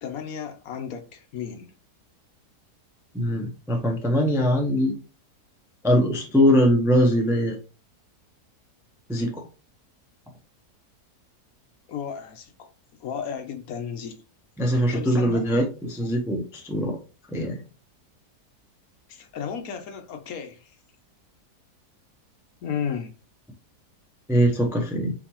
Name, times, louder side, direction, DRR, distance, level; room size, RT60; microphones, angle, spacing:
voice 1, 0.0-1.7 11.9-12.7 13.0-14.2 14.7-15.4 19.1-20.8 22.6-23.1, left 7 dB, 65° left, 1.1 m, -34 dB
voice 2, 3.1-5.0 5.8-7.6 9.1-9.4 14.6-17.0 17.3-17.6 24.3-25.1, equal, 5° right, 0.5 m, -22 dB
4.3 x 3.9 x 2.9 m
omnidirectional pair, 1.7 m